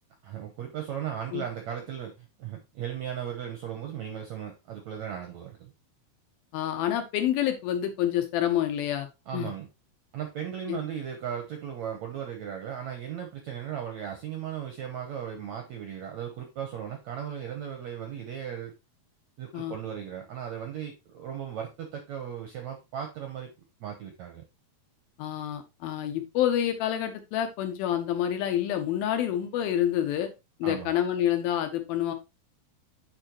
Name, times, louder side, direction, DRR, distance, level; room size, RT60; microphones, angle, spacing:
voice 1, 0.2-5.7 9.3-9.7 10.1-18.7 19.4-23.5 23.8-24.4 30.6-30.9, right 9 dB, 75° right, 1.7 m, -36 dB
voice 2, 6.5-9.5 10.7-10.8 19.5-19.8 25.2-30.3 30.6-32.1, left 11 dB, 75° left, 2.5 m, -28 dB
8.6 x 5.3 x 3.0 m
omnidirectional pair, 4.6 m